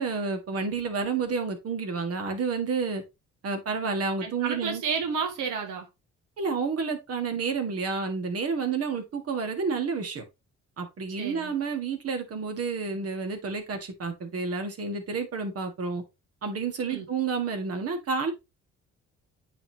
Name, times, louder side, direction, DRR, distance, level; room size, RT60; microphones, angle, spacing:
voice 1, 0.0-3.0 3.4-4.8 6.4-10.2 10.8-16.0 16.4-18.3, right 5 dB, 50° right, 1.8 m, -30 dB
voice 2, 4.2-5.9 11.2-11.5 16.9-17.0, right 6 dB, 85° right, 1.6 m, -31 dB
8.8 x 4.3 x 2.9 m
cardioid pair, 90°, 30 cm